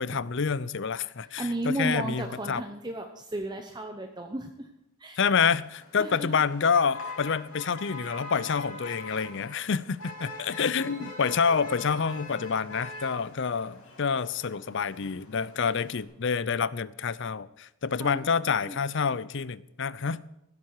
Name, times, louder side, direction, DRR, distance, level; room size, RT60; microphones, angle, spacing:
voice 1, 0.0-2.6 5.2-20.3, left 6 dB, 55° left, 0.5 m, -28 dB
voice 2, 1.4-4.7 5.0-5.2 6.0-6.4 18.0-18.8, right 1 dB, 20° right, 0.8 m, -34 dB
Motor vehicle (road), 5.5-16.0, left 2 dB, 80° left, 5.3 m, -43 dB
16.0 x 12.5 x 4.8 m
head